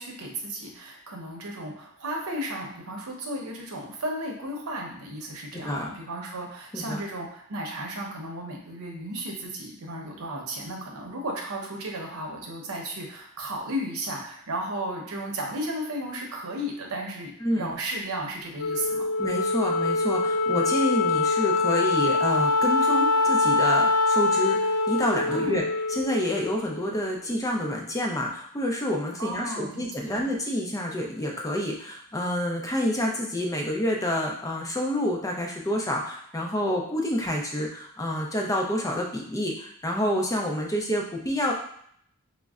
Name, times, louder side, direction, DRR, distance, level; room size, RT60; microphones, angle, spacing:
voice 1, 0.0-19.0 25.3-25.6 29.2-30.3, right 1 dB, 90° right, 1 dB, 0.7 m, -34 dB
voice 2, 5.5-5.9 6.7-7.0 17.4-17.7 19.2-25.6 25.9-41.5, left 1 dB, 15° left, 0 dB, 0.4 m, -28 dB
Wind instrument woodwind instrument, 18.6-27.2, left 3 dB, 80° left, 0.4 m, -24 dB
5.1 x 2.1 x 2.3 m, 0.65 s
head